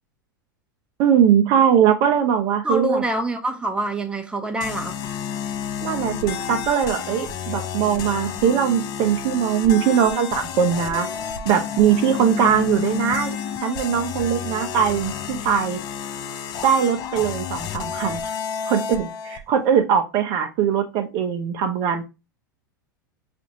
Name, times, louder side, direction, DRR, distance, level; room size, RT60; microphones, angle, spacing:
voice 1, 1.0-3.0 5.8-11.1 11.4-15.8 16.6-18.2 18.7-22.0, right 8 dB, 45° right, 0.6 m, -21 dB
voice 2, 2.6-5.0 12.0-12.1, right 1 dB, 10° right, 0.7 m, -26 dB
sound 1, 4.6-19.4, left 7 dB, 35° left, 0.6 m, -30 dB
5.9 x 2.5 x 2.8 m
figure-of-eight pair, 85°, 11 cm